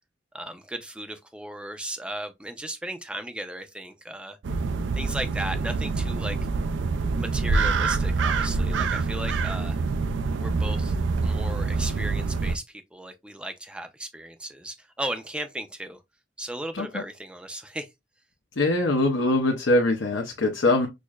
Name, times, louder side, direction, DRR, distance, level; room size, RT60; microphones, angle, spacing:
voice 1, 0.3-4.4 4.9-6.4 7.2-9.8 10.4-11.0 11.2-16.0 16.4-17.9, right 1 dB, 5° right, 0.4 m, -36 dB
sound 1, 4.4-12.6, right 4 dB, 75° right, 0.4 m, -26 dB
voice 2, 18.6-20.9, left 2 dB, 80° left, 0.7 m, -23 dB
6.2 x 2.1 x 2.3 m
head